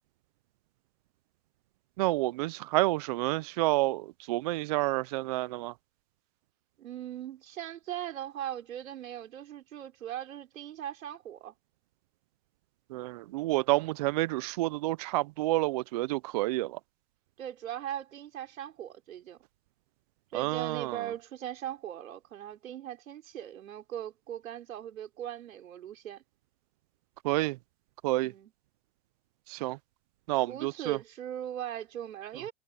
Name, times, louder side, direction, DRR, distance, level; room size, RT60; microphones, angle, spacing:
voice 1, 2.0-5.7 12.9-16.8 20.3-21.1 27.2-27.6 28.0-28.3 29.5-29.8 30.3-31.0, right 19 dB, 30° right, 0.4 m, -29 dB
voice 2, 6.8-11.5 17.4-19.4 20.3-26.2 28.2-28.5 30.3-32.5, right 11 dB, 70° right, 5.1 m, -39 dB
hypercardioid pair, 125°, 42 cm